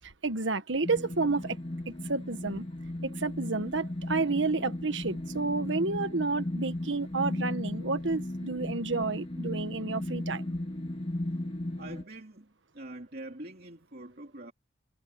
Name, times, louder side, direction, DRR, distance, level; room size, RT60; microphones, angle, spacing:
voice 1, 0.0-1.6 1.9-2.7 3.0-10.5, right 3 dB, 80° right, 1.4 m, -30 dB
sound 1, 0.8-12.0, left 1 dB, 30° left, 1.8 m, -36 dB
voice 2, 11.8-14.5, right 1 dB, 55° right, 2.8 m, -44 dB
head